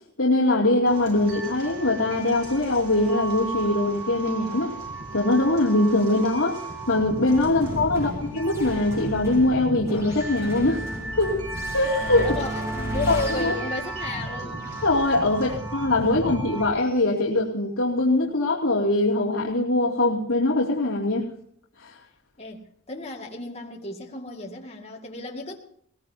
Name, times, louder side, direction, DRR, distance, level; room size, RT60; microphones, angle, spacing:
voice 1, 0.2-4.8 5.1-6.6 6.9-10.9 11.2-11.4 11.7-12.3 13.1-13.5 14.8-21.3 21.8-22.0, left 2 dB, 55° left, -5 dB, 2.7 m, -22 dB
sound 1, 0.8-16.7, right 2 dB, 80° right, 4.7 m, -35 dB
sound 2, 7.3-17.0, equal, 10° right, 7.5 m, -36 dB
voice 2, 7.9-8.3 12.2-14.7 15.3-15.6 22.4-25.6, left 2 dB, 30° left, 0 dB, 2.1 m, -34 dB
20.5 x 20.0 x 2.8 m, 0.64 s
head